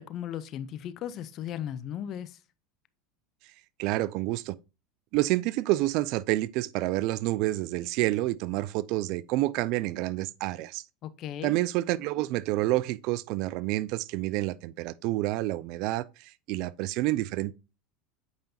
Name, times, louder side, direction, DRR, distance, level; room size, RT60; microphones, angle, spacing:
voice 1, 0.0-2.3 11.0-11.6, left 10 dB, 50° left, 0.6 m, -36 dB
voice 2, 3.8-4.5 5.1-10.8 11.4-17.5, right 17 dB, 60° right, 0.4 m, -28 dB
8.0 x 5.1 x 2.7 m
hypercardioid pair, 95°, 0 cm